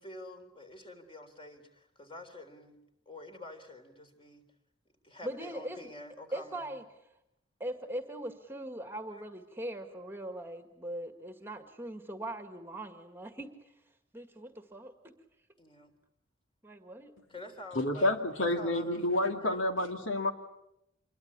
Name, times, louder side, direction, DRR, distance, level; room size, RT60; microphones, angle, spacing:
voice 1, 0.0-2.8 3.1-4.4 5.0-6.7 9.1-9.2 15.6-15.9 17.3-18.1 18.4-19.6, left 2 dB, 25° left, 6 dB, 3.6 m, -47 dB
voice 2, 5.2-5.8 6.3-6.8 7.6-13.6 14.1-15.1 16.6-17.1, right 1 dB, 10° right, 7 dB, 1.8 m, -40 dB
voice 3, 17.7-20.3, left 1 dB, 70° left, 5 dB, 2.5 m, -29 dB
27.5 x 23.0 x 8.8 m, 0.83 s
head